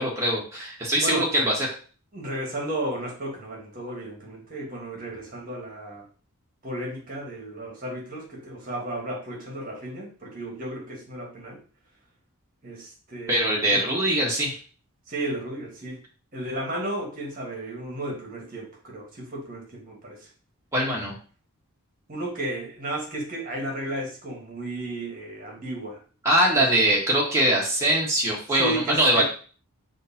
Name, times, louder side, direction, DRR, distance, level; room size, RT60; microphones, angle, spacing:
voice 1, 0.0-1.7 13.3-14.6 20.7-21.1 26.2-29.2, right 1 dB, 15° right, -5 dB, 1.3 m, -22 dB
voice 2, 2.1-6.0 6.6-11.6 12.6-13.8 15.1-16.0 16.3-20.3 22.1-26.0 26.5-26.8 27.8-27.9 28.6-29.2, right 1 dB, 40° right, -1 dB, 1.4 m, -33 dB
6.3 x 2.7 x 2.7 m, 0.39 s
head